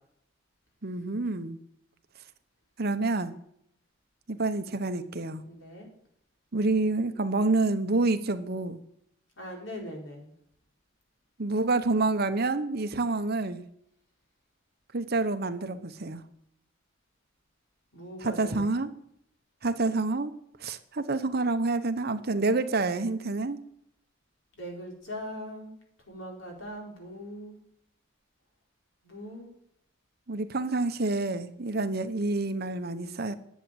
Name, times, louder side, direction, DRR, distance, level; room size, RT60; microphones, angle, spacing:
voice 1, 0.8-1.6 2.8-3.4 4.3-5.4 6.5-8.8 11.4-13.6 14.9-16.2 18.2-18.9 19.6-20.3 20.6-23.6 30.3-33.3, right 3 dB, 55° right, 10 dB, 1.0 m, -28 dB
voice 2, 5.5-5.9 9.4-10.3 17.9-18.6 24.5-25.8 26.1-27.6 29.0-29.5, equal, 80° left, 0 dB, 4.3 m, -40 dB
11.0 x 7.4 x 8.9 m, 0.72 s
head